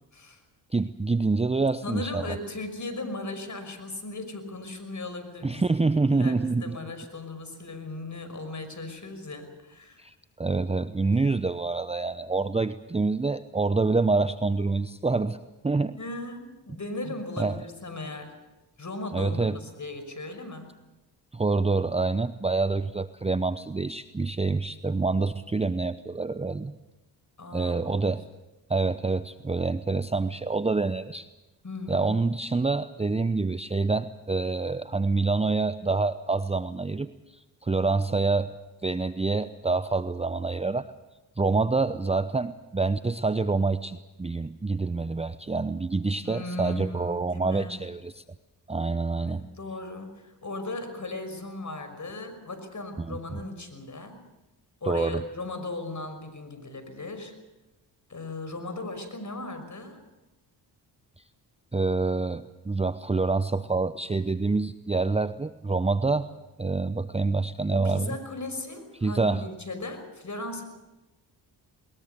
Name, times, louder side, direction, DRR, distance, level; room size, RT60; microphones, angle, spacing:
voice 1, 0.7-2.4 5.4-6.8 10.0-15.4 15.6-16.0 17.4-17.6 19.1-19.6 21.3-26.7 27.5-28.2 28.7-31.3 31.9-38.5 38.8-40.9 41.4-48.2 48.7-49.4 53.0-53.4 54.9-55.2 61.7-66.3 66.6-68.2 69.0-69.5, right 3 dB, 10° right, 13 dB, 0.7 m, -26 dB
voice 2, 1.8-5.8 6.1-10.0 16.0-18.3 18.8-20.7 27.4-28.0 31.6-32.1 46.2-47.8 49.1-54.2 54.8-57.3 58.1-60.0 67.7-70.6, left 2 dB, 35° left, 9 dB, 5.8 m, -37 dB
21.0 x 21.0 x 6.9 m, 1.0 s
supercardioid pair, 50°, 50 cm